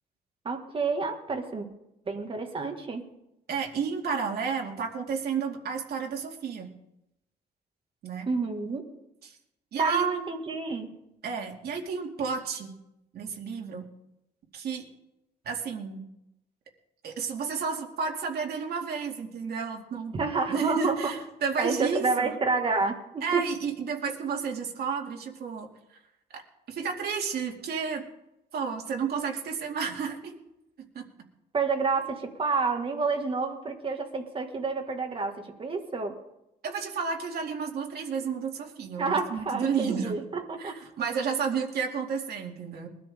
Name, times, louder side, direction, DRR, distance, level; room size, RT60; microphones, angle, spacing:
voice 1, 0.5-1.7 2.1-3.0 8.3-8.8 9.8-10.9 20.1-21.1 21.6-23.4 31.5-36.1 39.0-40.8, right 4 dB, 30° right, 3 dB, 1.9 m, -29 dB
voice 2, 3.5-6.7 8.0-8.3 9.2-9.4 9.7-10.1 11.2-12.7 13.1-13.9 14.5-14.8 15.4-16.0 17.0-20.2 20.5-22.4 23.2-25.7 26.7-28.0 28.5-30.3 30.9-31.0 36.6-40.2 40.6-42.9, right 6 dB, 70° right, 1 dB, 2.5 m, -31 dB
22.0 x 13.0 x 3.7 m, 0.87 s
wide cardioid pair, 165°, 17 cm